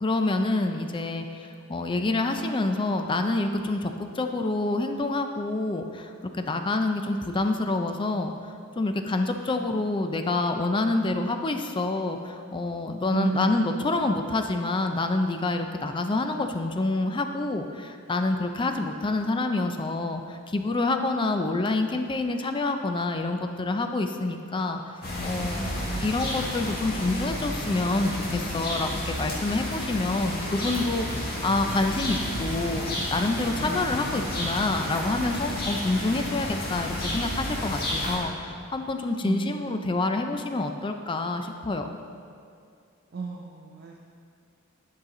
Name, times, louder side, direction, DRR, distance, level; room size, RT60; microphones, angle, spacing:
voice 1, 0.0-24.8 25.2-25.7 26.0-42.0, left 2 dB, 25° left, 6 dB, 0.4 m, -27 dB
voice 2, 13.1-13.7 25.6-26.1 33.6-33.8 39.2-40.0 43.1-44.0, right 4 dB, 50° right, 0 dB, 0.5 m, -34 dB
sound 1, 25.0-38.2, left 1 dB, 50° left, 1.8 m, -31 dB
10.5 x 5.7 x 3.8 m, 2.3 s
head